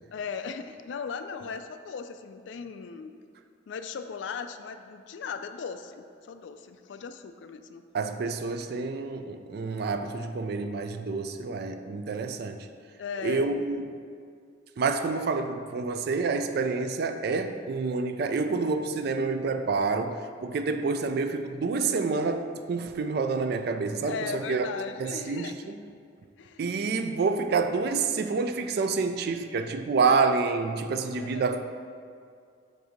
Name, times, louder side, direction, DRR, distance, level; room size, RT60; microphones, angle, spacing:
voice 1, 0.1-3.2 3.7-7.8 13.0-13.5 20.7-20.9 24.0-25.7 26.4-26.7 31.2-31.5, left 5 dB, 70° left, 9 dB, 0.3 m, -38 dB
voice 2, 7.9-12.7 13.2-14.0 14.8-24.7 25.0-25.8 26.6-31.7, right 4 dB, 55° right, 8 dB, 0.3 m, -28 dB
7.7 x 2.7 x 5.1 m, 2.2 s
head